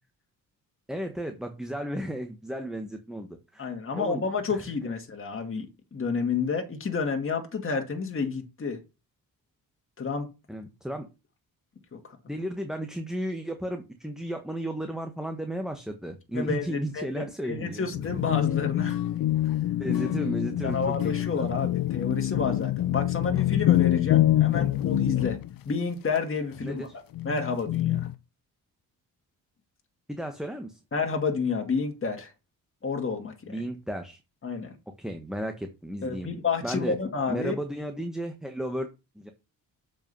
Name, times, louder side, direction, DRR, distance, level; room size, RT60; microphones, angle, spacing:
voice 1, 0.9-3.7 4.0-4.2 4.5-4.9 10.5-11.1 12.3-17.9 19.8-20.9 21.4-21.5 26.6-26.9 30.1-30.8 33.5-34.2 35.0-36.3 36.6-37.0 37.3-38.9 39.1-39.3, right 1 dB, ahead, 1.3 m, -34 dB
voice 2, 3.6-5.7 5.9-8.8 10.0-10.3 11.9-12.2 16.3-19.0 19.4-19.5 20.6-25.4 25.7-26.9 27.2-28.1 30.9-32.3 32.8-33.6 34.4-34.7 36.0-37.6, left 5 dB, 35° left, 2.2 m, -30 dB
sound 1, 17.9-25.6 26.6-26.7 27.1-28.1, left 13 dB, 70° left, 0.7 m, -25 dB
7.3 x 5.3 x 5.6 m
cardioid pair, 75°, 36 cm